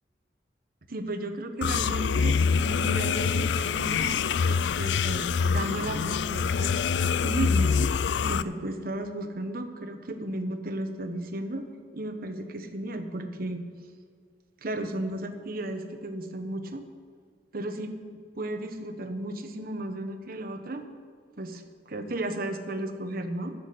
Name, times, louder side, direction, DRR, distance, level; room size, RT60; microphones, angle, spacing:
voice 1, 0.9-4.2 4.5-6.7 7.2-7.9 8.3-11.6 11.9-13.6 14.6-16.9 17.5-17.9 18.3-20.9 21.4-23.5, right 1 dB, 55° right, 6 dB, 1.1 m, -34 dB
sound 1, 1.6-8.4, left 6 dB, 80° left, 0.4 m, -25 dB
11.0 x 7.3 x 8.2 m, 2.1 s
head